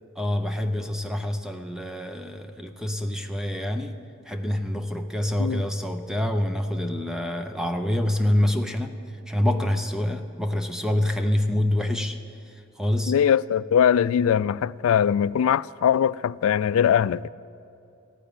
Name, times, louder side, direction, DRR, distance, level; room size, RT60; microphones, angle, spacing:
voice 1, 0.2-4.0 4.3-9.0 9.3-12.2 12.8-13.1, left 1 dB, 5° right, 0.5 m, -26 dB
voice 2, 13.1-17.3, left 8 dB, 70° left, 0.3 m, -21 dB
14.5 x 10.0 x 9.0 m
head